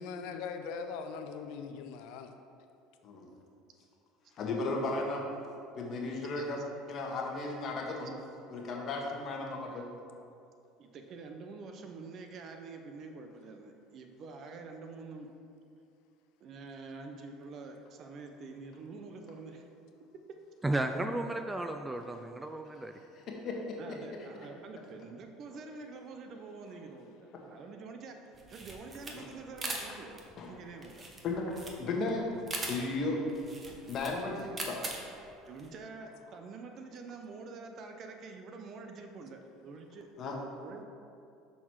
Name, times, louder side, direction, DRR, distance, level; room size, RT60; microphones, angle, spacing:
voice 1, 0.0-2.3, left 5 dB, 70° left, 6 dB, 0.4 m, -40 dB
voice 2, 4.4-5.2 5.7-8.1 8.5-9.9 23.1-23.8 29.1-29.3 30.4-30.6 31.2-31.4 31.7-32.3 32.7-33.2 33.9-34.8 40.2-40.4, left 3 dB, 50° left, -1 dB, 1.2 m, -35 dB
voice 3, 10.8-15.3 16.4-19.7 23.8-31.1 35.5-40.8, right 4 dB, 50° right, 5 dB, 0.7 m, -47 dB
voice 4, 20.6-22.9, right 2 dB, 10° right, 6 dB, 0.3 m, -33 dB
sound 1, 28.3-35.7, right 2 dB, 30° right, 1.1 m, -41 dB
6.0 x 4.0 x 4.6 m, 2.5 s
hypercardioid pair, 85°, 0 cm